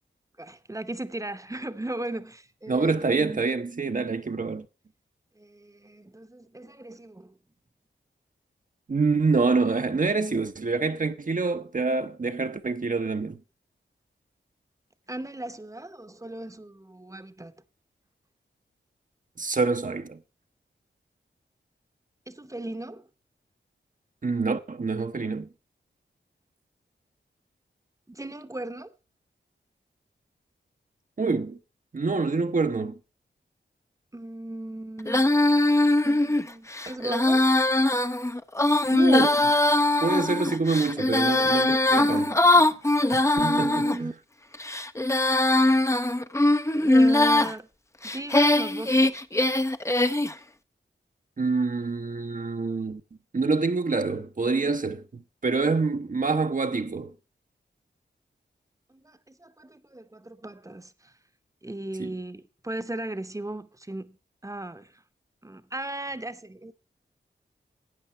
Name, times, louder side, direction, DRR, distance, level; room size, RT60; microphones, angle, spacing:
voice 1, 0.4-3.4 5.3-7.4 15.1-17.5 22.3-23.1 28.1-28.9 34.1-35.3 36.0-37.5 41.6-42.9 43.4-44.1 46.7-47.7 48.0-49.2 58.9-61.1 61.6-64.2 64.4-65.0 65.4-66.7, right 1 dB, 15° right, 0.9 m, -37 dB
voice 2, 2.7-4.7 8.9-13.4 19.4-20.2 24.2-25.5 31.2-31.6 31.9-33.0 38.9-39.5 40.0-42.2 43.1-43.7 44.0-44.1 51.4-53.0 53.3-57.1 62.0-62.1, right 4 dB, 40° right, 0.8 m, -26 dB
Female singing, 35.1-44.0 44.5-47.5 48.0-50.3, left 2 dB, 15° left, 0.6 m, -21 dB
12.5 x 8.6 x 4.3 m
cardioid pair, 50°, 20 cm